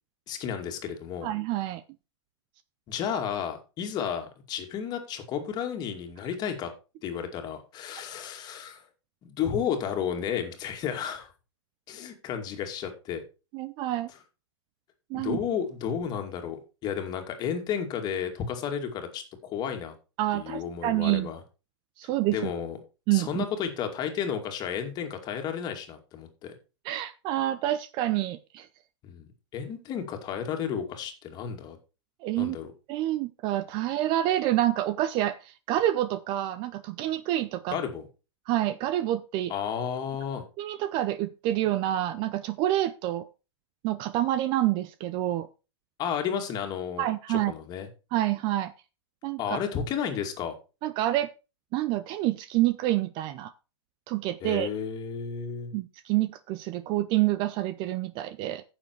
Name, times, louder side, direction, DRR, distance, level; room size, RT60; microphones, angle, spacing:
voice 1, 0.3-1.3 2.9-6.7 7.0-8.8 9.2-11.3 11.9-13.2 15.1-19.9 20.3-21.4 22.3-22.8 23.1-26.5 29.0-31.8 32.4-32.7 37.7-38.0 39.5-40.4 46.0-47.9 49.4-50.6 54.4-55.7, left 8 dB, 25° left, 6 dB, 2.3 m, -32 dB
voice 2, 1.2-1.8 13.5-14.1 15.1-15.4 20.2-21.3 22.0-22.5 23.1-23.4 26.8-28.7 32.2-32.6 32.9-37.8 38.5-39.5 40.6-43.3 43.8-45.5 47.0-47.5 48.1-48.7 49.2-49.6 50.8-51.3 51.7-53.5 54.1-54.7 55.7-58.6, right 14 dB, 30° right, 15 dB, 0.6 m, -27 dB
10.0 x 7.1 x 4.6 m, 0.31 s
hypercardioid pair, 140°, 15 cm